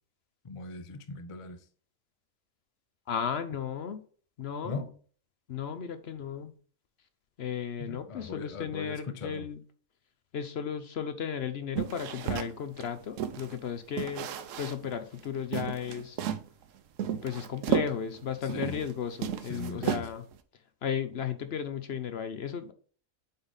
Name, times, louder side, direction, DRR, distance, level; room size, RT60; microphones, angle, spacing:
voice 1, 0.4-1.6 4.6-4.9 7.8-9.4 18.4-18.8 19.5-20.1, left 3 dB, 40° left, 0.4 m, -39 dB
voice 2, 3.1-4.0 4.4-4.8 5.5-6.5 7.4-9.6 10.3-14.3 14.6-16.2 17.2-20.2 20.8-22.7, left 7 dB, 55° left, 0.8 m, -35 dB
sound 1, 11.7-13.5 14.0-14.9 15.2-15.3 15.5-16.5 17.0-18.9 19.2-20.4, right 9 dB, 70° right, 1.0 m, -33 dB
8.0 x 4.0 x 3.5 m
omnidirectional pair, 1.4 m